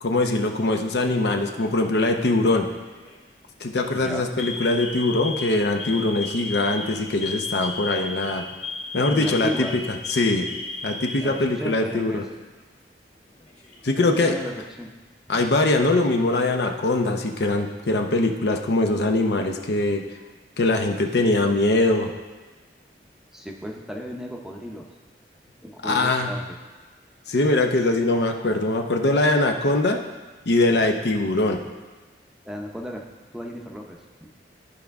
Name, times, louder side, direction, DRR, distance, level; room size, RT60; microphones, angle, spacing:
voice 1, 0.0-2.7 3.6-8.4 8.9-10.5 10.8-12.2 13.8-14.4 15.3-20.0 20.6-22.1 25.8-26.4 27.3-30.0 30.5-31.6, left 2 dB, 70° left, 4 dB, 0.7 m, -22 dB
Alarm, 1.5-2.0 2.9-3.2 3.6-3.8 4.4-11.9 12.2-12.3 13.3-14.0, left 3 dB, 40° left, 1.9 m, -34 dB
voice 2, 3.9-4.5 9.1-9.8 11.2-12.2 14.0-14.9 15.3-15.5 23.3-24.9 25.6-26.4 32.4-33.0 33.3-34.3, equal, 5° right, 0 dB, 0.7 m, -34 dB
13.0 x 5.0 x 3.5 m, 1.3 s
head